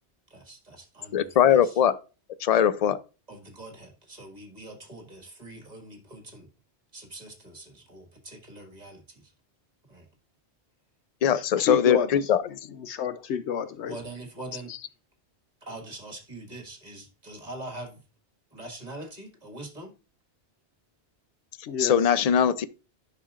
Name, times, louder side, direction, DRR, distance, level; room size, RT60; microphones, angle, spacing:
voice 1, 0.3-1.8 3.3-6.5 6.9-9.3 9.9-10.1 13.9-14.9 15.6-18.0 18.5-19.9, right 2 dB, 35° right, 1.8 m, -43 dB
voice 2, 1.1-2.0 2.4-3.0 11.2-12.4 21.8-22.7, left 9 dB, 60° left, 0.4 m, -21 dB
voice 3, 11.3-12.1 12.5-12.6 12.8-13.9 21.7-22.0, left 8 dB, 80° left, 0.9 m, -30 dB
10.0 x 6.1 x 2.4 m
omnidirectional pair, 1.1 m